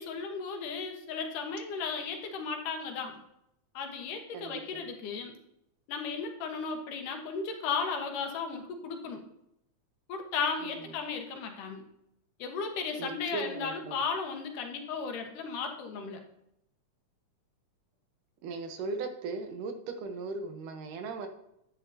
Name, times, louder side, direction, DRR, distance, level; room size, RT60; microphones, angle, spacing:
voice 1, 0.0-3.2 3.7-5.3 5.9-9.2 10.1-11.8 12.4-16.2, left 5 dB, 85° left, 4 dB, 2.8 m, -35 dB
voice 2, 4.3-4.8 10.6-10.7 13.0-14.0 18.4-21.3, right 4 dB, 85° right, 6 dB, 2.6 m, -38 dB
10.0 x 9.9 x 2.7 m, 0.79 s
omnidirectional pair, 3.6 m